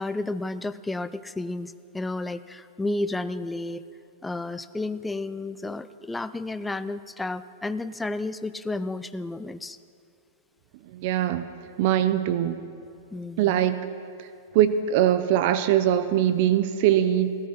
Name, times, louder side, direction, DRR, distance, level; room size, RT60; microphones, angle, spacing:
voice 1, 0.0-3.8 4.2-9.8 13.1-13.7, left 2 dB, 10° left, 13 dB, 0.4 m, -32 dB
voice 2, 10.9-11.5 11.8-12.6 13.4-13.9 14.2-14.3 14.5-17.4, right 11 dB, 55° right, 12 dB, 0.7 m, -22 dB
17.0 x 13.5 x 5.8 m, 2.4 s
hypercardioid pair, 135°, 0 cm